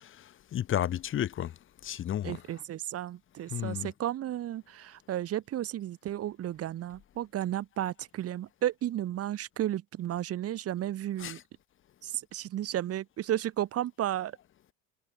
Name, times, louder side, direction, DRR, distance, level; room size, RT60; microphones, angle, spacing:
voice 1, 0.5-1.5 1.8-2.4 3.5-3.9 11.2-11.4, left 11 dB, 35° left, 1.5 m, -32 dB
voice 2, 2.2-11.4 12.0-14.3, right 12 dB, 45° right, 2.8 m, -33 dB
cardioid pair, 135°, 34 cm